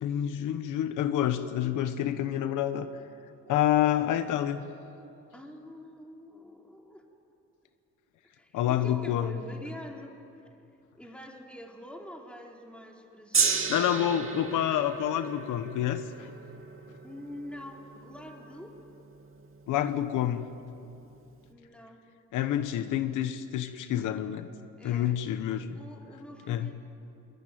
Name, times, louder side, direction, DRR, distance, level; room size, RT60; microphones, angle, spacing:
voice 1, 0.0-2.9 3.5-4.6 8.5-9.3 13.7-16.3 19.7-20.4 22.3-24.5 24.8-25.8 26.5-26.7, left 11 dB, 85° left, 10 dB, 1.1 m, -28 dB
voice 2, 5.3-7.0 8.3-10.6 10.9-14.2 17.0-18.8 21.5-22.0 24.8-25.2 25.7-26.8, left 1 dB, 5° left, 0 dB, 3.9 m, -45 dB
Gong, 13.3-19.7 20.5-20.6, right 5 dB, 45° right, 2.8 m, -33 dB
23.5 x 22.0 x 9.3 m, 2.7 s
cardioid pair, 90°, 30 cm